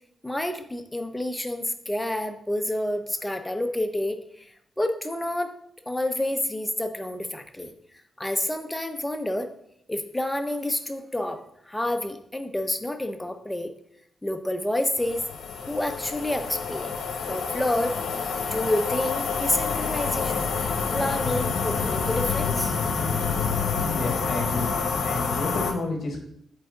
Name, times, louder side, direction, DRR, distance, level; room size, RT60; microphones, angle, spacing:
voice 1, 0.2-4.5 4.8-5.6 5.9-7.7 8.2-9.5 9.9-13.7 14.2-15.2 15.7-17.0 17.3-18.0 18.5-20.5 20.9-22.7, left 1 dB, 10° left, 7 dB, 0.5 m, -28 dB
sound 1, 15.0-25.7, left 5 dB, 75° left, 0.8 m, -28 dB
voice 2, 23.9-24.7 25.0-26.2, left 3 dB, 55° left, 3 dB, 1.3 m, -30 dB
8.0 x 3.4 x 3.7 m, 0.72 s
wide cardioid pair, 145°, 0 cm